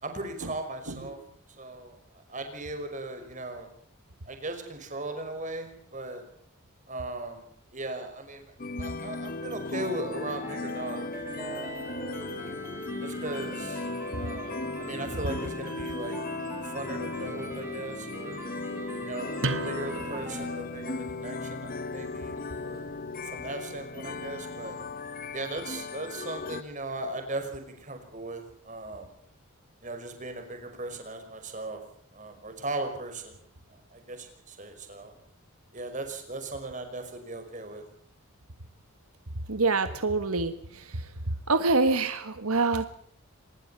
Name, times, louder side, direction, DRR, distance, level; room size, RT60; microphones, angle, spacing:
voice 1, 0.0-1.2 1.6-3.7 4.3-6.2 6.9-8.5 8.8-11.1 11.4-12.3 13.0-13.9 14.1-16.2 16.6-18.4 19.1-22.9 23.2-24.8 25.3-29.1 29.8-31.8 32.1-33.4 33.7-35.1 35.7-37.8, right 2 dB, 35° right, 6 dB, 5.5 m, -38 dB
sound 1, 8.6-26.6, left 3 dB, 40° left, 0.9 m, -37 dB
sound 2, 10.4-20.5, right 1 dB, 10° right, 5.4 m, -41 dB
sound 3, 19.4-24.8, right 2 dB, 60° right, 2.5 m, -39 dB
voice 2, 39.5-41.1 41.5-42.9, right 3 dB, 85° right, 10 dB, 1.6 m, -26 dB
26.0 x 20.5 x 5.7 m, 0.64 s
head